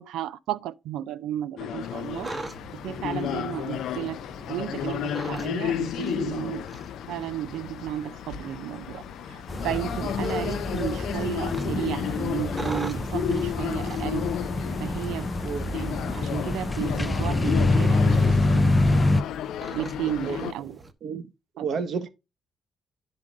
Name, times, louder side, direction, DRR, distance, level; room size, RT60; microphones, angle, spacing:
voice 1, 0.0-2.3 2.8-4.2 4.5-6.7 7.1-9.0 9.3-14.3 14.8-15.3 15.7-19.1 19.7-20.8 21.6-21.7, right 12 dB, 85° right, 0.3 m, -33 dB
sound 1, 1.6-20.5, left 10 dB, 80° left, 0.4 m, -33 dB
sound 2, 1.8-20.9, right 2 dB, 25° right, 0.8 m, -43 dB
sound 3, 9.5-19.2, left 2 dB, 10° left, 0.4 m, -26 dB
voice 2, 21.6-22.1, right 5 dB, 60° right, 0.9 m, -31 dB
10.0 x 3.7 x 3.6 m
cardioid pair, 90°, 0 cm